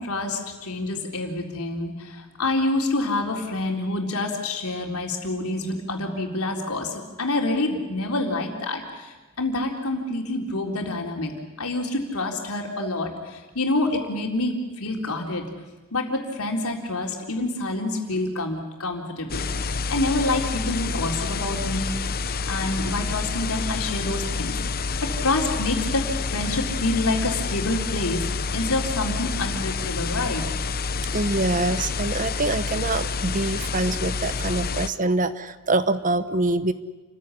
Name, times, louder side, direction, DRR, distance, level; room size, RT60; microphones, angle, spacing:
voice 1, 0.0-11.3 11.6-15.4 15.9-19.4 19.9-21.9 22.5-26.1 26.3-28.2 28.5-30.4, left 2 dB, 85° left, 2 dB, 3.9 m, -27 dB
sound 1, 19.3-34.9, left 4 dB, 45° left, 0.8 m, -28 dB
voice 2, 31.1-36.7, right 2 dB, 35° right, 12 dB, 1.0 m, -25 dB
29.0 x 15.0 x 10.0 m, 1.2 s
head